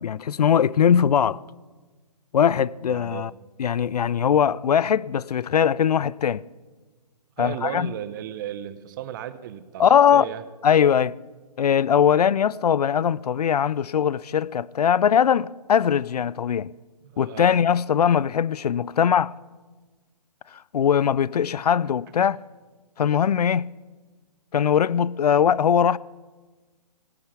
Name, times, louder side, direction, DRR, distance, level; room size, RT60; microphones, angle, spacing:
voice 1, 0.0-1.4 2.3-3.3 3.6-6.4 7.4-7.9 9.8-10.2 10.6-11.1 11.6-16.7 17.2-19.3 20.5-22.4 23.0-23.7 24.5-26.0, left 8 dB, 70° left, 0.4 m, -21 dB
voice 2, 2.9-3.3 7.4-10.4 17.0-17.6 22.2-22.3, right 11 dB, 30° right, 0.7 m, -35 dB
18.0 x 8.6 x 5.9 m
figure-of-eight pair, 140°, 21 cm